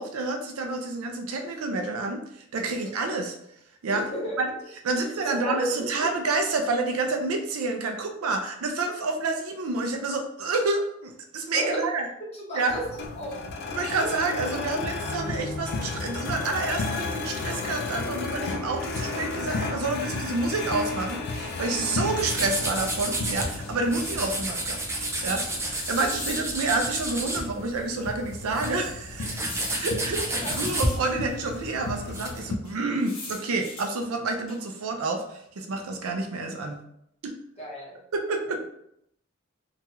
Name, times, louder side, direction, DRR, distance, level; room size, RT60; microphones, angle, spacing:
voice 1, 0.0-2.2 2.5-3.4 3.8-4.0 4.4-4.5 4.8-12.1 12.5-12.8 13.7-29.4 29.7-36.8 37.2-37.3 38.1-38.6, right 3 dB, 90° right, 4 dB, 0.5 m, -29 dB
voice 2, 3.9-4.4 4.9-6.1 11.5-11.8 12.3-13.4 14.0-14.1 30.1-30.6 37.6-38.0 38.5-38.6, equal, 30° left, -4 dB, 0.9 m, -34 dB
sound 1, 12.7-32.6, left 3 dB, 50° left, 0.3 m, -34 dB
sound 2, 19.7-20.3 21.3-21.4 21.7-21.8 22.6-24.4 25.7-27.4 28.0-28.1 29.4-31.4 32.6-34.0 34.5-34.8, left 3 dB, 90° left, 1.0 m, -42 dB
sound 3, 22.2-23.6 23.9-27.9 28.2-32.4, right 1 dB, 15° right, 0.4 m, -31 dB
2.9 x 2.3 x 2.9 m, 0.75 s
head